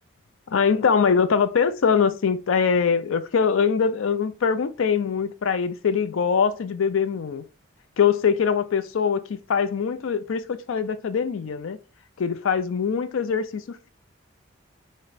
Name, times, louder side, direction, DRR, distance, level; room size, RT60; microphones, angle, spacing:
voice 1, 0.5-7.4 8.0-11.8 12.2-13.9, left 6 dB, 75° left, 0.4 m, -23 dB
4.4 x 2.1 x 3.9 m
head